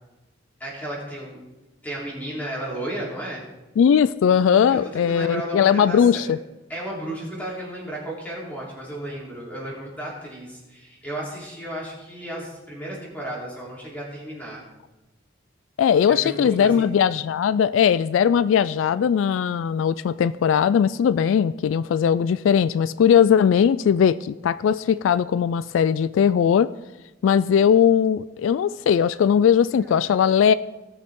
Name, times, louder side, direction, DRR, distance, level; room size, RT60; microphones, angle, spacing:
voice 1, 0.6-1.4 1.8-3.4 4.7-6.3 6.7-14.6 16.1-16.9 29.7-30.2, right 1 dB, 10° left, -6 dB, 3.7 m, -34 dB
voice 2, 3.8-6.4 15.8-26.7 27.2-30.5, left 8 dB, 85° left, 16 dB, 0.3 m, -19 dB
19.0 x 6.5 x 3.7 m, 1.1 s
head